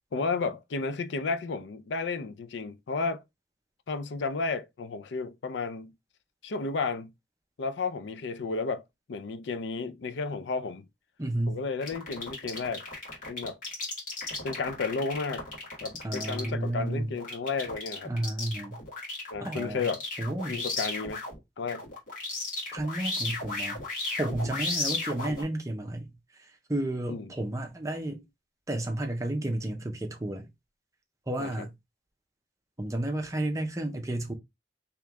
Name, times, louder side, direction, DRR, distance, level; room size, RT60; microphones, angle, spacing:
voice 1, 0.1-3.2 3.9-5.9 6.4-7.1 7.6-8.8 9.1-10.8 11.5-12.8 13.3-13.6 14.4-15.5 15.8-18.1 19.3-20.0 20.5-21.2 21.6-21.9 27.1-27.2 31.4-31.7, left 4 dB, 85° left, 0.4 m, -32 dB
voice 2, 11.2-11.6 16.0-17.1 18.0-18.8 19.4-19.8 20.2-20.6 22.7-23.8 24.2-26.1 26.5-28.2 28.7-30.5 31.3-31.7 32.8-34.3, right 1 dB, 15° right, 0.6 m, -32 dB
sound 1, 11.8-21.4 21.7-25.4, left 2 dB, 45° left, 1.7 m, -35 dB
3.3 x 3.0 x 3.5 m
head